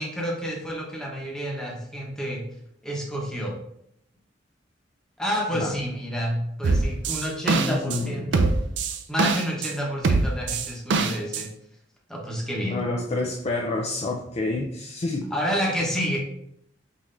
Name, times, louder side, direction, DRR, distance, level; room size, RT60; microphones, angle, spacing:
voice 1, 0.0-2.4 2.8-3.5 5.2-8.5 9.1-11.5 12.1-12.8 15.3-16.2, equal, 5° left, -2 dB, 0.9 m, -29 dB
sound 1, 6.6-8.0 8.3-9.7 10.0-11.4, right 3 dB, 65° right, 0.4 m, -23 dB
voice 2, 7.5-8.4 12.7-15.3, left 2 dB, 35° left, 0 dB, 0.4 m, -28 dB
5.6 x 3.1 x 2.6 m, 0.74 s
head